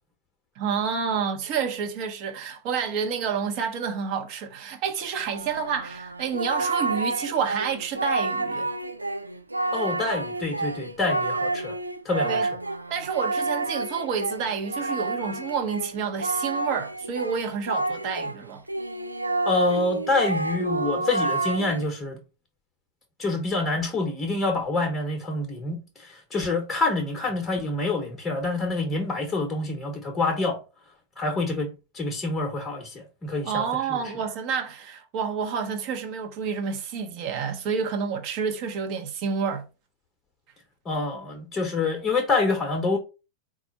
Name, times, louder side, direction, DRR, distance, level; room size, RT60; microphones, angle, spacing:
voice 1, 0.6-8.7 12.2-12.5 12.9-18.6 33.4-39.6, right 6 dB, 45° right, 0.9 m, -29 dB
Singing, 5.3-18.4 18.7-21.9, right 2 dB, 85° right, 0.3 m, -29 dB
voice 2, 9.7-11.7 12.0-12.4 19.4-22.2 23.2-30.6 31.2-33.6 33.9-34.0 40.9-43.0, left 3 dB, 20° left, 0.9 m, -27 dB
4.2 x 2.4 x 4.2 m
figure-of-eight pair, 90°, 0 cm